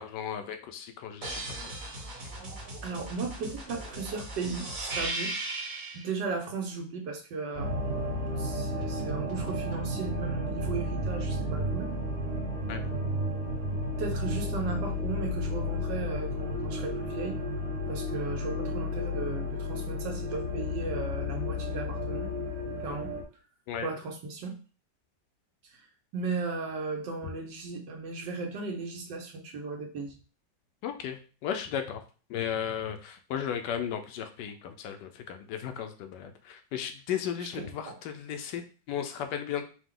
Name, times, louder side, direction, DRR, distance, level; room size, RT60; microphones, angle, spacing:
voice 1, 0.0-1.7 12.7-12.8 23.7-23.9 30.8-32.0 32.3-39.7, left 8 dB, 75° left, 7 dB, 1.2 m, -35 dB
sound 1, 1.2-6.1 8.8-9.9, right 2 dB, 50° right, 1.7 m, -38 dB
voice 2, 2.8-5.3 5.9-7.7 8.4-11.9 14.0-17.4 17.9-22.3 22.8-23.1 23.8-24.5 25.7-25.8 26.1-30.1 37.4-38.0, right 4 dB, 75° right, 3 dB, 1.5 m, -36 dB
sound 2, 7.5-23.2, left 1 dB, 30° right, 0.7 m, -32 dB
4.8 x 2.2 x 3.7 m, 0.37 s
omnidirectional pair, 1.9 m